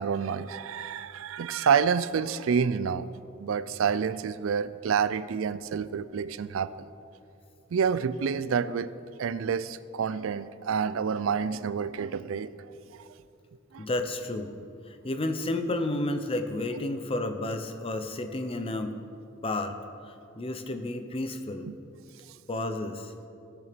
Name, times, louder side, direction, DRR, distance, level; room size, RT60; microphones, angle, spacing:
voice 1, 0.0-3.1 3.4-6.9 7.7-8.9 9.2-12.5 12.9-13.1 13.7-13.9 16.8-16.9 21.6-21.7, right 6 dB, 75° right, 16 dB, 0.4 m, -28 dB
voice 2, 13.8-14.5 14.9-19.0 19.4-19.7 20.1-21.7 22.5-23.1, left 2 dB, 25° left, 7 dB, 0.7 m, -31 dB
16.5 x 6.9 x 5.1 m, 2.6 s
head